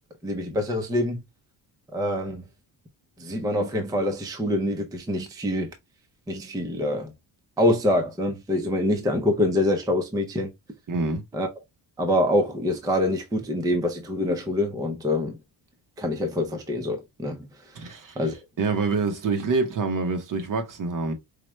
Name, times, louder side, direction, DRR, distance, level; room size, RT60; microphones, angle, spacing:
voice 1, 0.2-1.2 1.9-2.4 3.2-5.7 6.3-7.1 7.6-10.5 11.3-11.5 12.0-15.4 16.0-17.4 18.2-18.3, left 1 dB, 10° right, 0.5 m, -25 dB
voice 2, 10.9-11.2 17.7-18.3 18.6-21.1, right 4 dB, 45° right, 0.9 m, -26 dB
4.8 x 2.1 x 3.0 m
cardioid pair, 155°, 45 cm